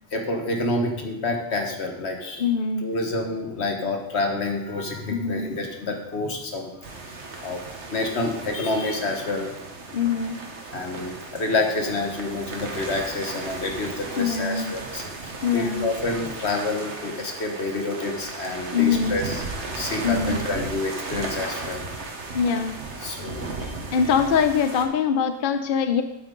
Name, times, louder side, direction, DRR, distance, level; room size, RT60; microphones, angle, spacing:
voice 1, 0.1-2.5 2.8-6.7 7.1-7.6 7.9-9.5 10.7-21.8 23.0-23.6, left 2 dB, 75° left, 3 dB, 1.6 m, -28 dB
voice 2, 2.4-2.9 5.1-5.5 9.9-10.4 14.2-14.7 15.4-15.9 18.7-19.2 20.0-20.4 22.3-22.8 23.9-26.0, left 6 dB, 55° left, 8 dB, 0.7 m, -23 dB
sound 1, 6.8-24.9, right 3 dB, 90° right, 1.5 m, -35 dB
9.0 x 8.9 x 3.8 m, 0.93 s
omnidirectional pair, 1.1 m